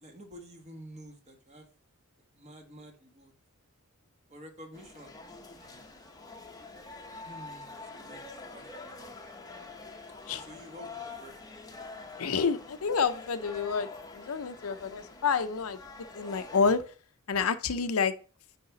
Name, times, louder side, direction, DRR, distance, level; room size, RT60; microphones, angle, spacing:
voice 1, 0.0-1.7 2.3-3.3 4.3-5.2 5.6-5.8 7.2-9.1 10.3-11.4, equal, 30° right, 3 dB, 1.5 m, -50 dB
sound 1, 4.7-16.8, left 3 dB, 15° left, 0.8 m, -46 dB
voice 2, 12.2-13.9 14.1-15.8 16.1-16.8 17.3-18.1, left 5 dB, 75° left, 11 dB, 0.6 m, -28 dB
9.6 x 3.5 x 3.9 m, 0.38 s
head